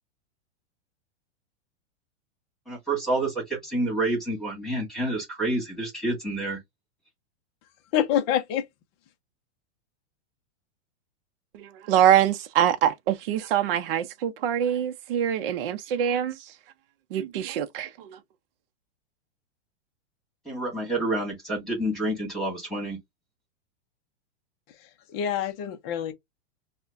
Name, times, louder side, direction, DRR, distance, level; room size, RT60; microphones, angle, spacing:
voice 1, 2.7-6.6 20.4-23.0, right 2 dB, ahead, 1.7 m, -28 dB
voice 2, 7.9-8.6 25.1-26.1, left 10 dB, 20° left, 0.5 m, -26 dB
voice 3, 11.5-16.4 17.1-18.1, right 10 dB, 55° right, 0.7 m, -24 dB
4.9 x 2.2 x 2.5 m
supercardioid pair, 165°, 35 cm